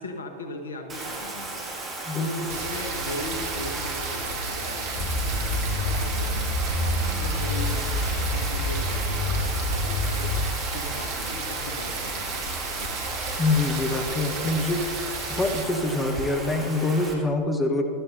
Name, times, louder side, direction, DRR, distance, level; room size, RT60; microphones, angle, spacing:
voice 1, 0.0-12.5 12.8-12.9, left 1 dB, 70° left, 5 dB, 1.1 m, -39 dB
Bathtub (filling or washing), 0.9-17.1, right 2 dB, 20° right, 2.2 m, -35 dB
sound 1, 2.5-15.6, right 4 dB, 50° right, 1.6 m, -34 dB
sound 2, 5.0-10.8, left 2 dB, 40° left, 1.2 m, -27 dB
voice 2, 13.4-14.8 15.3-17.9, left 2 dB, 15° left, 4 dB, 1.0 m, -25 dB
16.0 x 12.0 x 2.7 m, 2.6 s
figure-of-eight pair, 90°, 0 cm